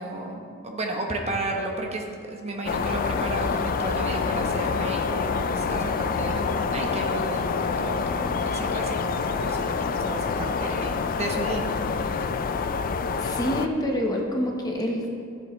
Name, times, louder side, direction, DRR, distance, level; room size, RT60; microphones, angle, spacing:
voice 1, 0.0-11.8, right 1 dB, 30° right, 1 dB, 0.9 m, -33 dB
sound 1, 2.7-13.7, left 5 dB, 40° left, 0.4 m, -27 dB
voice 2, 13.2-15.3, equal, 20° left, 0 dB, 1.1 m, -27 dB
14.5 x 8.1 x 3.2 m, 2.4 s
head